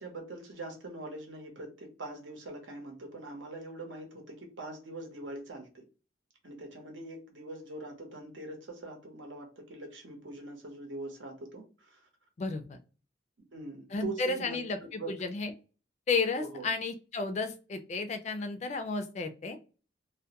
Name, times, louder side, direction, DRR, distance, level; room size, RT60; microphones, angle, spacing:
voice 1, 0.0-5.8 6.4-12.1 13.5-15.1 16.4-16.7, right 2 dB, 80° right, 3 dB, 0.9 m, -43 dB
voice 2, 12.4-12.8 13.9-15.5 16.1-19.6, left 4 dB, 35° left, 8 dB, 0.3 m, -33 dB
2.1 x 2.1 x 2.8 m, 0.35 s
head